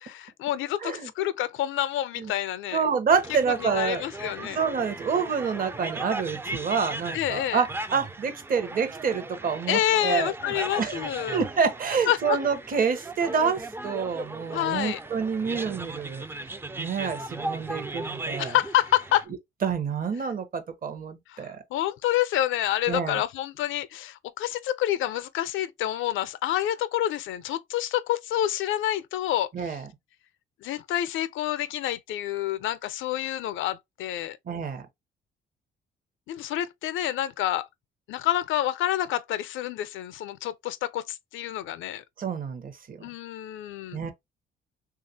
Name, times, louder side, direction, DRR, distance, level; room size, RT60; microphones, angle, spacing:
voice 1, 0.0-2.8 3.6-4.6 7.1-7.6 9.7-11.4 12.1-12.4 14.5-15.0 18.4-19.3 21.3-29.8 30.6-34.4 36.3-37.7 38.1-42.0 43.0-44.1, left 12 dB, 80° left, 0.5 m, -28 dB
voice 2, 2.7-4.0 4.4-11.0 11.3-16.2 16.8-18.6 19.6-21.6 22.9-23.2 29.5-29.9 34.5-34.9 42.2-43.0 43.9-44.1, right 6 dB, 45° right, 0.8 m, -28 dB
sound 1, 3.1-19.2, right 2 dB, 10° right, 0.3 m, -37 dB
3.3 x 2.4 x 2.7 m
cardioid pair, 90°, 20 cm